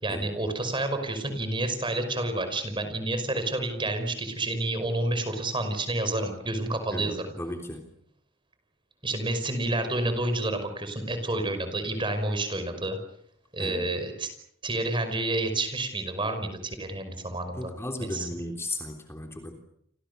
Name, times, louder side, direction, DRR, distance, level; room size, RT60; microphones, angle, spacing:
voice 1, 0.0-7.3 9.0-13.0 13.5-14.3 14.6-17.7 18.0-18.3, right 2 dB, 25° right, 8 dB, 5.4 m, -29 dB
voice 2, 6.9-7.9 13.6-13.9 17.6-19.6, left 1 dB, 15° left, 3 dB, 3.4 m, -36 dB
30.0 x 25.5 x 6.9 m, 0.72 s
head